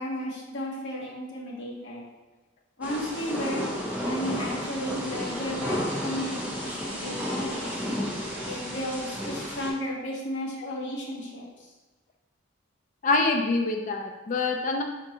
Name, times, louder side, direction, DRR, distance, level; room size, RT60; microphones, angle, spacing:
voice 1, 0.0-2.0 2.8-7.9 8.4-11.7, equal, 65° left, -3 dB, 1.1 m, -34 dB
Thunder / Rain, 2.8-9.7, equal, 5° right, 0.7 m, -32 dB
voice 2, 13.0-14.8, left 3 dB, 40° left, 3 dB, 0.3 m, -25 dB
5.0 x 3.6 x 2.8 m, 1.1 s
head